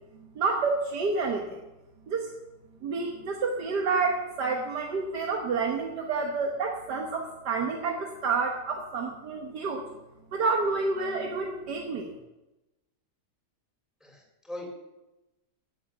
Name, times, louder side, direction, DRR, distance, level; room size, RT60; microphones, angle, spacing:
voice 1, 0.4-1.5 2.1-2.3 2.8-9.8 10.3-12.1, right 4 dB, 80° right, 2 dB, 1.9 m, -29 dB
voice 2, 14.0-14.7, left 1 dB, ahead, -1 dB, 3.5 m, -41 dB
16.5 x 7.5 x 7.3 m, 1.0 s
omnidirectional pair, 1.8 m